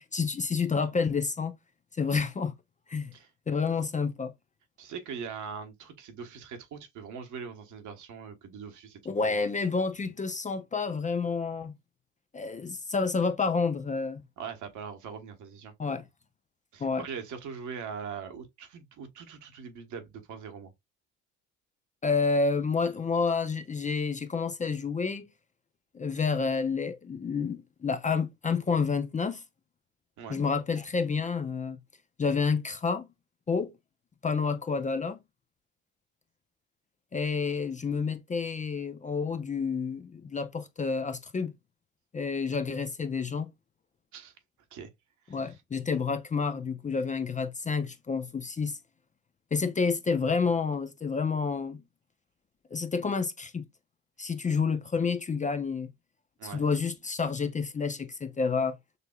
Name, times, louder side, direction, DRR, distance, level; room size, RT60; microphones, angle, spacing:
voice 1, 0.0-1.6 2.0-2.5 2.9-3.1 3.5-4.3 9.1-11.7 12.3-14.2 15.8-16.0 16.8-17.0 22.0-25.3 25.9-29.4 30.3-31.8 32.2-33.1 33.5-33.7 34.2-35.2 37.1-41.5 42.1-43.5 45.3-48.8 49.5-51.8 52.7-53.6 54.2-55.9 56.4-58.8, left 5 dB, 20° left, 0.6 m, -29 dB
voice 2, 4.8-9.5 14.4-15.7 16.7-20.7 30.2-30.4 44.1-44.3 44.7-44.9 45.3-45.6 56.4-56.6, right 6 dB, 60° right, 1.3 m, -41 dB
6.7 x 2.7 x 2.3 m
hypercardioid pair, 65°, 34 cm